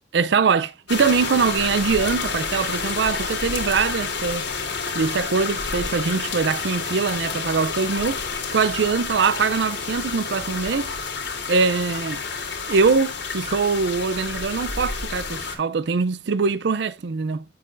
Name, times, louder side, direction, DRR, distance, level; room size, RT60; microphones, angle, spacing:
voice 1, 0.1-4.5 4.9-8.2 8.5-10.9 11.5-12.2 12.7-17.4, right 5 dB, 65° right, 0.4 m, -22 dB
sound 1, 0.9-15.6, left 5 dB, 70° left, 3.2 m, -29 dB
8.7 x 8.1 x 2.5 m
head